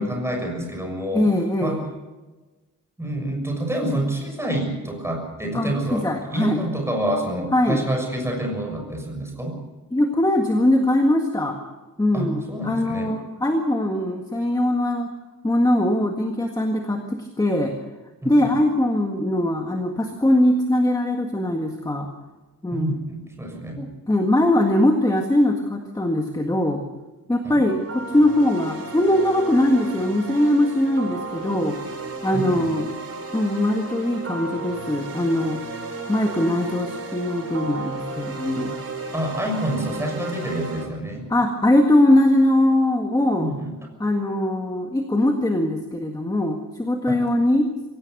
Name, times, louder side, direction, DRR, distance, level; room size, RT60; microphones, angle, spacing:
voice 1, 0.0-1.3 1.6-1.8 3.0-9.5 12.1-13.1 18.2-18.6 22.7-23.8 27.4-27.6 32.3-32.7 39.1-41.3 43.4-43.7 47.1-47.2, right 1 dB, 10° right, 1 dB, 6.5 m, -27 dB
voice 2, 1.1-1.8 5.5-6.6 7.5-7.9 9.9-11.6 12.0-15.1 15.4-17.8 18.3-22.1 22.6-23.0 23.8-26.8 27.3-31.8 32.2-32.9 33.3-35.6 36.1-38.8 41.3-43.5 44.0-47.7, left 1 dB, 10° left, 3 dB, 1.8 m, -21 dB
sound 1, 27.7-40.8, right 3 dB, 45° right, 4.0 m, -34 dB
24.5 x 17.0 x 6.6 m, 1.2 s
wide cardioid pair, 175°, 34 cm